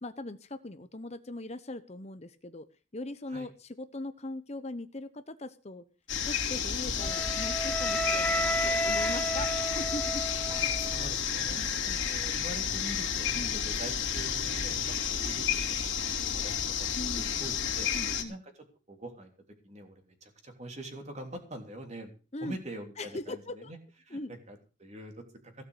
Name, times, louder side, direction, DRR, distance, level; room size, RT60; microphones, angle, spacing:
voice 1, 0.0-5.9 6.2-10.3 11.6-11.7 13.3-13.5 16.9-17.4 17.9-18.4 22.3-22.6 23.0-23.7 24.1-24.3, left 2 dB, 35° left, 10 dB, 0.9 m, -40 dB
sound 1, 6.1-18.2, left 7 dB, 70° left, 3.1 m, -31 dB
Wind instrument woodwind instrument, 7.0-11.0, right 1 dB, 10° left, 1.2 m, -32 dB
voice 2, 10.5-15.7 16.2-16.5 16.8-17.9 18.3-18.4 18.9-19.3 19.6-22.1 22.4-23.8 24.0-25.2, right 1 dB, 35° right, 4 dB, 3.3 m, -44 dB
16.5 x 6.7 x 8.1 m, 0.36 s
head